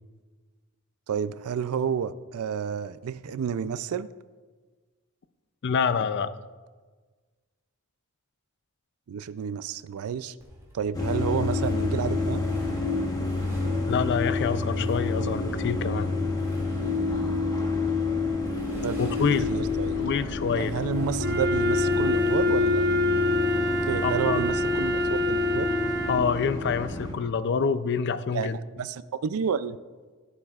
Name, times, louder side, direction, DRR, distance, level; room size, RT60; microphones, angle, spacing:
voice 1, 1.1-4.1 9.1-10.3 10.7-12.5 18.8-19.0 19.5-20.0 20.5-22.8 23.9-25.7 28.3-29.8, right 7 dB, 80° right, 16 dB, 0.4 m, -30 dB
voice 2, 5.6-6.3 13.9-16.1 19.0-19.5 20.0-20.7 24.0-24.4 26.1-28.6, left 6 dB, 55° left, 13 dB, 0.4 m, -26 dB
Motorcycle, 10.4-23.2, equal, 15° right, 2.3 m, -46 dB
sound 1, 10.9-27.1, left 3 dB, 15° left, 1.1 m, -29 dB
Wind instrument woodwind instrument, 21.2-26.3, left 2 dB, 50° right, 0.7 m, -25 dB
14.5 x 8.1 x 2.4 m, 1.4 s
head